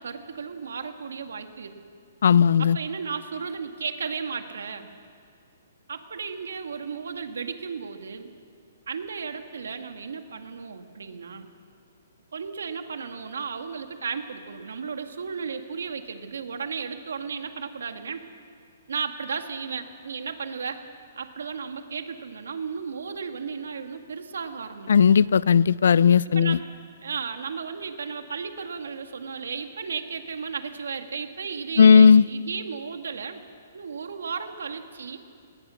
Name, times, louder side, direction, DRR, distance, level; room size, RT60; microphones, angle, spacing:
voice 1, 0.0-1.7 2.6-4.9 5.9-8.3 8.9-11.5 12.3-18.2 18.9-20.8 21.2-25.1 26.3-26.6 27.0-33.4 33.7-35.2, right 5 dB, 85° right, 6 dB, 2.2 m, -34 dB
voice 2, 2.2-2.8 24.9-26.6 31.8-32.2, left 6 dB, 70° left, 21 dB, 0.5 m, -16 dB
26.5 x 20.0 x 6.6 m, 2.4 s
hypercardioid pair, 170°, 0 cm